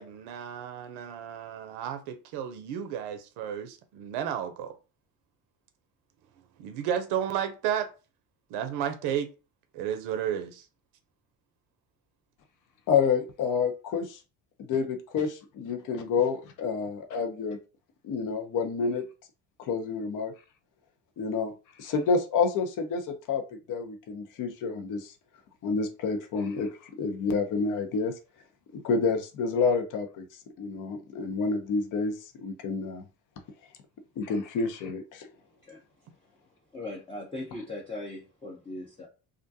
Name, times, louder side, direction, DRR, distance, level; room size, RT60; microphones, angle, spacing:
voice 1, 0.0-4.7 6.6-7.9 8.5-9.3 9.7-10.6, right 9 dB, 70° right, 0.6 m, -32 dB
voice 2, 12.9-14.2 14.6-17.6 18.0-19.0 19.7-20.3 21.2-21.5 21.8-23.4 23.7-25.1 25.6-28.1 28.7-30.2 30.6-33.0 34.2-35.3, left 5 dB, 50° left, 0.7 m, -28 dB
voice 3, 36.7-39.1, left 2 dB, 15° left, 0.7 m, -39 dB
2.4 x 2.2 x 2.7 m
hypercardioid pair, 70°, 42 cm